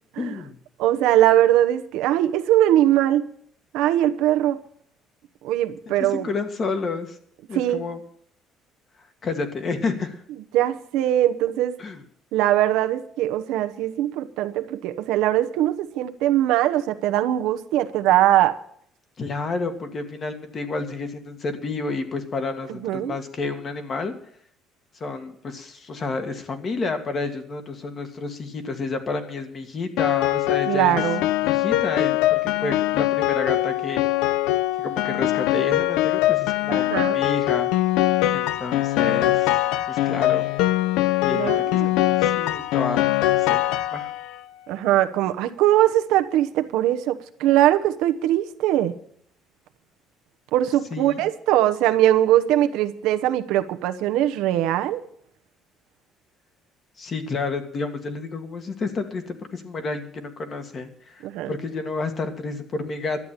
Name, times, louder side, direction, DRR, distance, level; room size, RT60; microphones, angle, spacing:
voice 1, 0.2-0.6 6.1-7.2 7.5-8.0 9.2-10.2 11.8-12.0 19.2-24.1 25.0-31.0 31.4-34.1 34.8-37.7 38.3-39.6 39.9-40.5 41.2-43.6 43.9-44.1 50.9-51.3 57.0-63.2, left 3 dB, 35° left, 6 dB, 1.8 m, -30 dB
voice 2, 0.8-3.3 3.7-4.6 5.4-6.3 7.5-7.8 10.5-11.8 12.3-18.6 22.8-23.1 30.7-31.2 36.7-37.2 41.3-41.9 44.7-48.9 50.5-55.0 61.2-61.5, right 13 dB, 85° right, 9 dB, 0.9 m, -21 dB
Piano, 30.0-44.4, left 15 dB, 90° left, 0.6 m, -22 dB
12.0 x 8.3 x 9.0 m, 0.64 s
cardioid pair, 140°, 0 cm